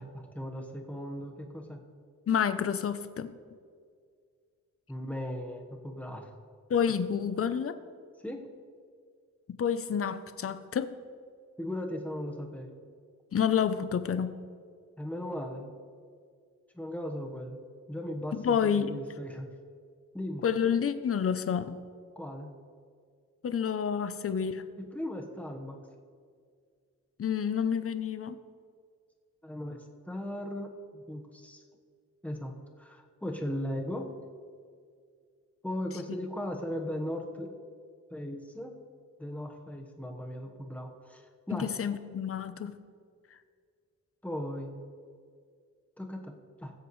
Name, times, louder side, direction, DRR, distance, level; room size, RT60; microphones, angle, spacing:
voice 1, 0.0-1.8 4.9-6.3 8.2-8.4 11.6-12.7 15.0-15.7 16.7-17.6 17.9-19.5 20.1-20.4 22.1-22.5 24.8-25.8 29.4-31.6 32.2-34.1 35.6-37.5 38.1-38.8 39.2-41.7 44.2-44.7 46.0-46.7, left 1 dB, 5° left, 2 dB, 1.2 m, -37 dB
voice 2, 2.3-3.3 6.7-7.7 9.6-11.0 13.3-14.4 18.3-18.9 20.4-21.8 23.4-24.7 27.2-28.4 41.6-42.8, left 7 dB, 45° left, 12 dB, 0.6 m, -29 dB
19.5 x 7.9 x 3.2 m, 2.1 s
wide cardioid pair, 110°, 33 cm